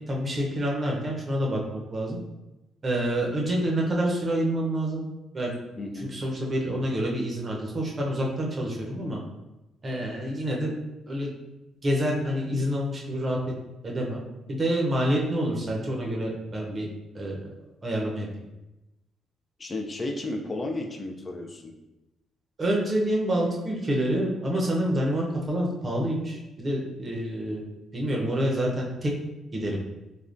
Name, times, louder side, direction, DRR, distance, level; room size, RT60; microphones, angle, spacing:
voice 1, 0.1-2.2 2.8-5.0 5.3-5.5 6.0-9.2 9.8-10.7 11.1-11.3 11.8-13.4 13.8-14.2 14.5-16.9 17.1-17.5 17.8-18.3 22.6-27.6 27.9-29.1 29.5-29.8, right 1 dB, 30° right, -2 dB, 0.7 m, -27 dB
voice 2, 5.8-6.1 19.6-21.7, left 2 dB, 30° left, 3 dB, 0.4 m, -33 dB
3.4 x 2.2 x 2.5 m, 0.98 s
cardioid pair, 90°, 0 cm